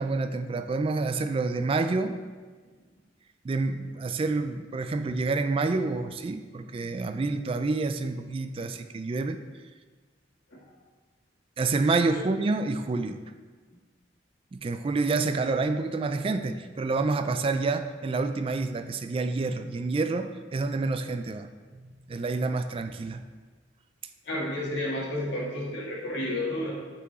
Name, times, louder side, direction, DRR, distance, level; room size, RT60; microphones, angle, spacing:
voice 1, 0.0-2.2 3.4-9.4 11.6-13.2 14.5-21.5 22.1-23.2, right 3 dB, 30° right, 8 dB, 0.3 m, -28 dB
voice 2, 24.3-26.7, left 1 dB, 65° left, -5 dB, 1.9 m, -31 dB
8.3 x 4.4 x 4.2 m, 1.4 s
head